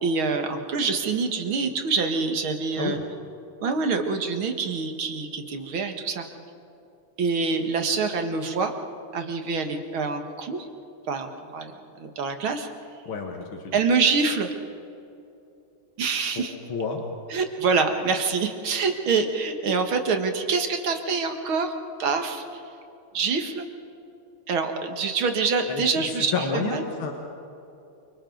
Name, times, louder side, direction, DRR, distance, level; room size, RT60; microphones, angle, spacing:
voice 1, 0.0-3.0 3.6-6.2 7.2-8.7 9.1-10.7 11.1-11.7 12.0-12.7 13.7-14.5 16.0-16.5 17.3-21.7 22.0-22.6 23.1-23.7 24.5-26.8, right 4 dB, 80° right, 5 dB, 2.5 m, -25 dB
voice 2, 13.1-13.8 16.4-16.5 16.7-17.0 25.7-27.1, left 4 dB, 85° left, 1 dB, 2.5 m, -30 dB
28.5 x 25.5 x 4.0 m, 2.7 s
omnidirectional pair, 2.2 m